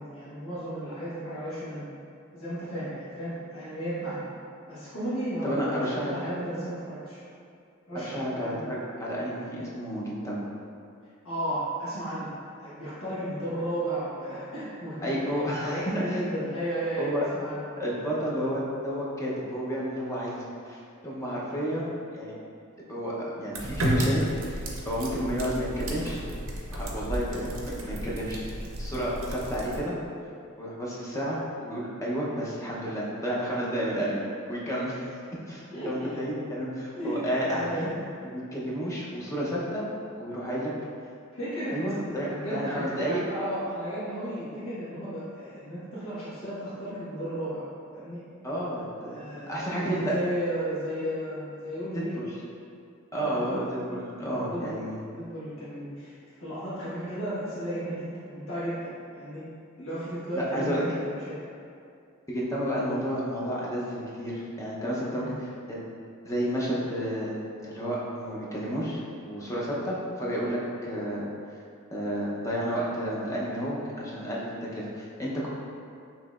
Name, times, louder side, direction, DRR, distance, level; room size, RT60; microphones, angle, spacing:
voice 1, 0.0-1.9 2.3-4.3 4.7-7.2 7.9-8.7 11.2-12.3 12.6-17.7 21.6-21.8 35.7-36.1 36.9-38.0 41.3-41.8 42.2-47.6 47.9-48.2 49.1-52.2 53.1-53.5 54.1-59.4 59.8-61.4 65.1-65.3, right 1 dB, 80° left, -12 dB, 1.3 m, -34 dB
voice 2, 5.4-6.1 7.9-10.4 15.0-15.8 16.1-16.3 17.0-17.2 17.8-22.4 22.9-26.2 26.7-30.0 30.6-34.2 34.5-35.0 35.3-37.9 38.2-39.8 40.2-40.7 41.7-43.2 48.4-49.2 49.5-50.1 51.9-52.4 53.1-55.0 60.3-60.8 62.3-65.8 66.2-71.3 71.9-75.5, equal, 15° left, -6 dB, 0.7 m, -31 dB
sound 1, 23.5-29.8, right 1 dB, 70° right, 0.6 m, -32 dB
6.1 x 2.8 x 2.4 m, 2.4 s
head